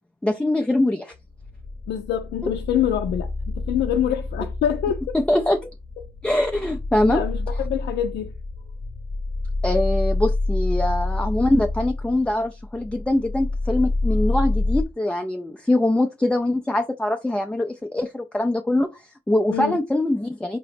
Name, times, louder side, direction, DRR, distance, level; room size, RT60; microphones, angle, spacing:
voice 1, 0.2-1.1 5.1-5.7 6.2-7.2 9.6-20.6, left 1 dB, 5° left, 0.4 m, -23 dB
sound 1, 1.1-14.8, left 2 dB, 30° left, 0.9 m, -27 dB
voice 2, 1.9-5.2 7.1-8.3 19.5-19.7, left 10 dB, 75° left, 0.5 m, -25 dB
3.7 x 2.9 x 3.3 m
supercardioid pair, 55°, 18 cm